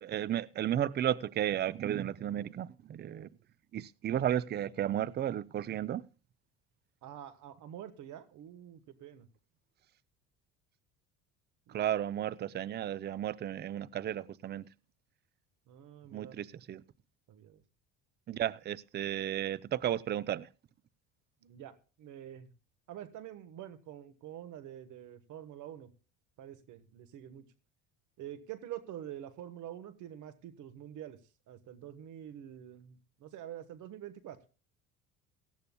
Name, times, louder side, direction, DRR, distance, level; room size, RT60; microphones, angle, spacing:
voice 1, 0.0-3.3 3.7-6.0 11.7-14.7 16.1-16.8 18.3-20.5, right 11 dB, 30° right, 0.5 m, -33 dB
voice 2, 7.0-9.3 11.7-11.9 15.7-16.3 17.3-17.6 21.4-22.5 22.9-25.9 26.4-27.4 28.2-31.2 31.5-34.4, right 11 dB, 60° right, 1.3 m, -46 dB
18.0 x 14.0 x 2.2 m
supercardioid pair, 90°, 34 cm